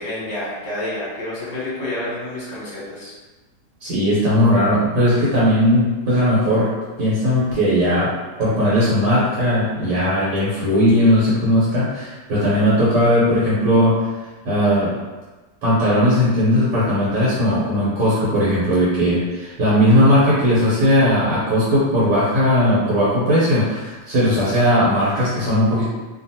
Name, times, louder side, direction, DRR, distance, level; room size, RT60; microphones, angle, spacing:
voice 1, 0.0-3.1, left 1 dB, 35° left, -7 dB, 0.8 m, -29 dB
voice 2, 3.8-6.7 7.0-8.1 8.4-14.1 14.4-15.0 15.6-25.9, equal, 90° right, -9 dB, 1.5 m, -18 dB
2.8 x 2.5 x 2.7 m, 1.2 s
omnidirectional pair, 1.8 m